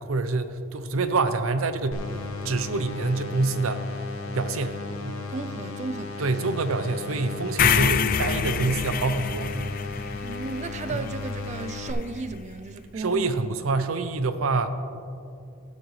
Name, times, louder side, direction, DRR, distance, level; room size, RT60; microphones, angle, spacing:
voice 1, 0.0-2.0 2.4-3.8 4.3-5.2 6.2-9.5 12.9-14.7, right 3 dB, 75° right, 0.6 m, -26 dB
sound 1, 1.9-11.9, left 4 dB, 90° left, 0.8 m, -36 dB
voice 2, 5.3-6.3 10.2-13.4, right 3 dB, 35° right, 0.4 m, -34 dB
sound 2, 7.6-11.7, left 7 dB, 40° left, 0.4 m, -27 dB
12.5 x 9.6 x 3.1 m
head